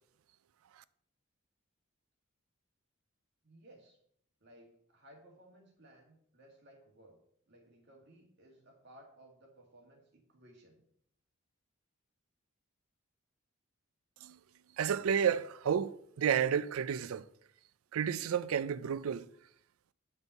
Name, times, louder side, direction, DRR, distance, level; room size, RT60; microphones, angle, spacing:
voice 1, 3.4-4.0 4.4-7.2 7.5-10.8, right 1 dB, 55° right, 2.0 m, -59 dB
voice 2, 14.8-17.3 17.9-19.3, right 8 dB, 85° right, 0.4 m, -31 dB
9.4 x 5.3 x 4.1 m
head